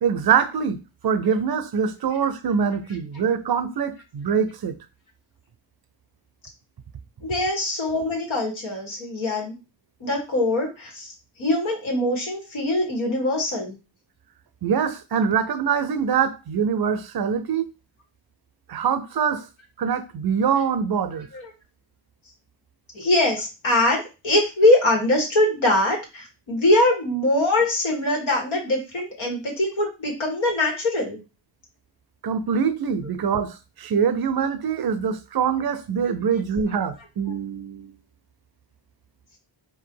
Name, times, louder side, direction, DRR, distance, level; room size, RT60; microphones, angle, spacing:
voice 1, 0.0-4.8 14.6-17.7 18.7-19.4 19.8-21.3 32.2-37.9, right 7 dB, 55° right, 0.6 m, -24 dB
voice 2, 7.2-9.5 10.0-13.8 21.3-21.5 22.9-31.2, left 1 dB, 90° left, 1.9 m, -22 dB
4.4 x 2.8 x 3.8 m
cardioid pair, 80°, 45 cm